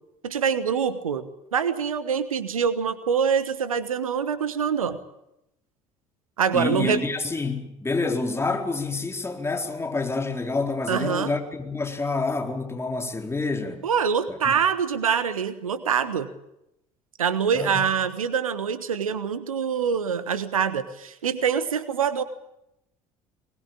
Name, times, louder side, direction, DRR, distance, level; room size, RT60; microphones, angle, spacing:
voice 1, 0.2-5.0 6.4-7.0 10.9-11.3 13.8-16.3 17.2-22.2, right 7 dB, 80° right, 13 dB, 1.4 m, -25 dB
voice 2, 6.5-13.8 14.3-14.5 17.5-17.9, left 3 dB, 15° left, 3 dB, 4.3 m, -28 dB
22.0 x 21.0 x 8.7 m, 0.84 s
figure-of-eight pair, 60°, 18 cm